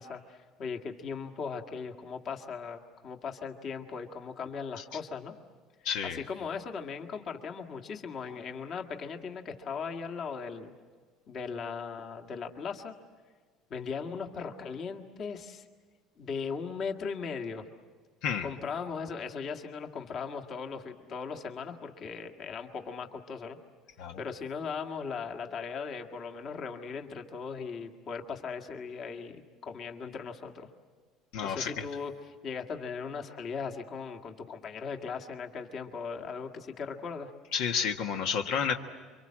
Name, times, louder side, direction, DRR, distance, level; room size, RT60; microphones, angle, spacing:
voice 1, 0.0-5.3 6.0-10.7 11.3-12.9 13.7-15.6 16.2-17.7 18.4-23.6 24.2-30.7 31.4-37.3, left 5 dB, 35° left, 4 dB, 1.8 m, -38 dB
voice 2, 5.8-6.2 18.2-18.5 24.0-24.2 31.3-31.8 37.5-38.7, left 7 dB, 70° left, 4 dB, 1.5 m, -30 dB
28.5 x 24.5 x 7.5 m, 1.5 s
cardioid pair, 155°, 0 cm